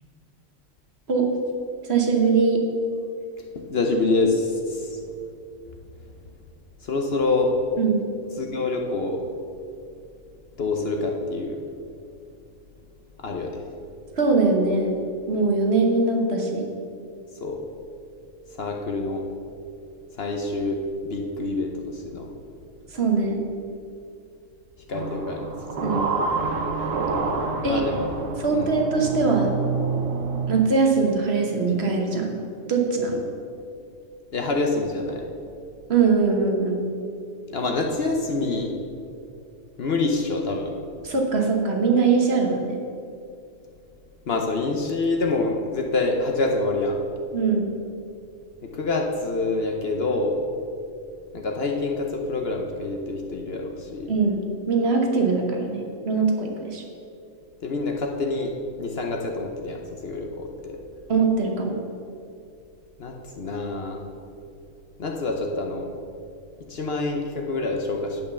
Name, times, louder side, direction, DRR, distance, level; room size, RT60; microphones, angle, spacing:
voice 1, 1.9-2.6 7.8-8.0 14.2-14.9 15.3-16.6 22.9-23.4 25.8-26.1 27.6-27.8 28.4-29.5 30.5-32.3 32.7-33.2 35.9-36.8 41.0-42.8 47.3-47.7 54.1-54.4 54.7-56.8 61.1-61.7, right 4 dB, 50° right, 2 dB, 1.3 m, -21 dB
voice 2, 3.5-5.0 6.8-7.5 8.4-9.2 10.6-11.6 13.2-13.7 17.4-17.7 18.6-19.2 20.2-22.3 24.9-25.5 25.8-26.3 27.7-28.1 28.5-28.7 33.1-33.2 34.3-35.2 37.5-38.7 39.8-40.7 44.3-47.0 48.6-50.4 51.3-54.1 57.6-58.5 58.8-60.8 63.0-64.0 65.0-65.9 66.7-68.2, left 3 dB, 55° left, 2 dB, 0.9 m, -26 dB
sound 1, 24.9-30.7, right 4 dB, 70° right, 1.2 m, -28 dB
9.3 x 5.5 x 6.8 m, 2.5 s
omnidirectional pair, 1.4 m